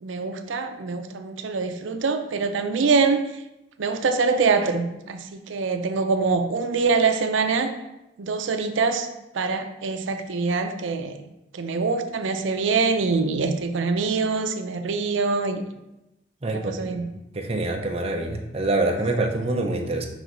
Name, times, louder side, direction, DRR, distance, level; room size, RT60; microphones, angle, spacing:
voice 1, 0.0-3.3 3.8-7.7 8.2-9.1 9.3-11.2 11.5-15.6 16.5-17.1, right 4 dB, 90° right, 7 dB, 0.5 m, -24 dB
voice 2, 16.4-17.0 17.3-20.1, right 2 dB, 30° right, 2 dB, 0.6 m, -25 dB
5.4 x 4.8 x 3.8 m, 0.93 s
head